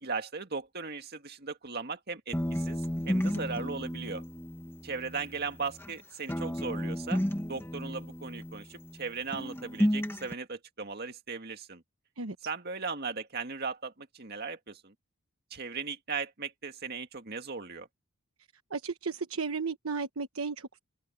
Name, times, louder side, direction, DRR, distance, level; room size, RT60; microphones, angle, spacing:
voice 1, 0.0-4.2 4.8-7.2 7.5-11.8 12.4-14.9 15.5-17.9, right 4 dB, 50° right, 2.1 m, -37 dB
sound 1, 2.3-6.0 6.3-9.1 9.3-10.3, equal, 10° left, 1.4 m, -33 dB
voice 2, 18.7-20.8, right 4 dB, 85° right, 1.2 m, -34 dB
head